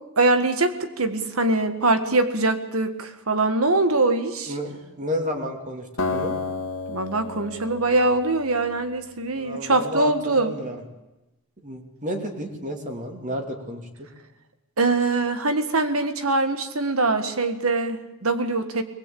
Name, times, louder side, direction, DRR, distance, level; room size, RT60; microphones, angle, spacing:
voice 1, 0.2-4.5 6.9-10.6 14.8-18.8, right 2 dB, 75° right, 9 dB, 1.9 m, -23 dB
voice 2, 4.5-6.4 9.3-10.8 11.6-14.1, equal, 35° right, 3 dB, 2.9 m, -31 dB
Acoustic guitar, 6.0-9.1, left 3 dB, 70° left, 2.0 m, -32 dB
21.5 x 20.0 x 8.7 m, 1.0 s
head